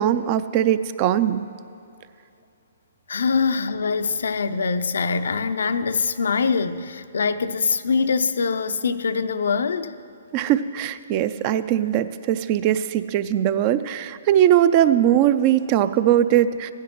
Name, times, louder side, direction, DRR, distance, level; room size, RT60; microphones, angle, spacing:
voice 1, 0.0-1.5 10.3-16.7, right 11 dB, 35° right, 0.4 m, -20 dB
voice 2, 3.1-10.0, left 5 dB, 70° left, 0.4 m, -23 dB
15.5 x 10.0 x 3.0 m
hypercardioid pair, 135°, 0 cm